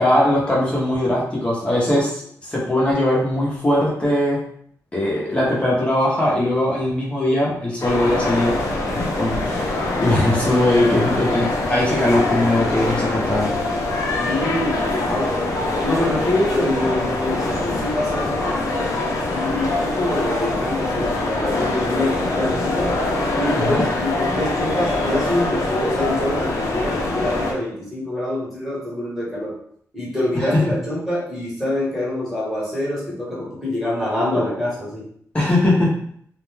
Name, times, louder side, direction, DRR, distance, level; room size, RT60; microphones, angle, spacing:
voice 1, 0.0-4.4 4.9-8.6 8.9-13.5 14.0-14.3 23.5-23.8 30.3-30.6 35.3-35.9, left 1 dB, 20° left, -4 dB, 0.7 m, -20 dB
sound 1, 7.8-27.5, left 2 dB, 65° left, 0.6 m, -23 dB
voice 2, 14.1-15.5 15.8-18.9 19.3-22.9 23.4-29.5 29.9-35.1, left 1 dB, ahead, -8 dB, 1.1 m, -25 dB
2.5 x 2.1 x 3.2 m, 0.63 s
wide cardioid pair, 175°, 6 cm